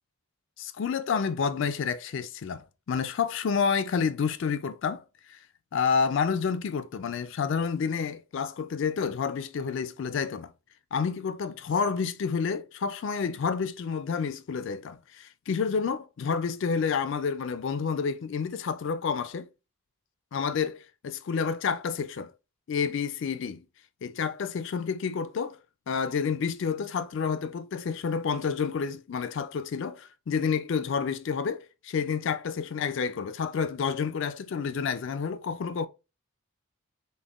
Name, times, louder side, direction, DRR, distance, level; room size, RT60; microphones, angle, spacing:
voice 1, 0.6-5.0 5.3-5.4 5.7-10.5 10.9-19.5 20.3-22.3 22.7-23.6 24.0-25.6 25.9-35.9, left 6 dB, 55° left, 0.3 m, -29 dB
5.2 x 2.2 x 2.4 m
head